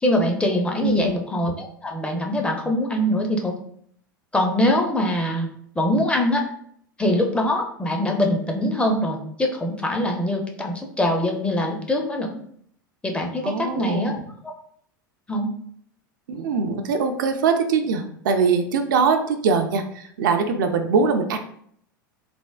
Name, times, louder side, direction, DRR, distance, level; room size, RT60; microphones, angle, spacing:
voice 1, 0.0-3.5 4.3-5.5 5.8-6.4 7.0-12.4 13.0-14.1 14.4-14.5 15.3-15.5, left 1 dB, 10° left, 2 dB, 0.5 m, -23 dB
voice 2, 0.8-1.2 13.4-14.2 16.3-21.4, right 5 dB, 65° right, 5 dB, 0.4 m, -22 dB
3.3 x 2.0 x 2.3 m, 0.65 s
figure-of-eight pair, 85°, 11 cm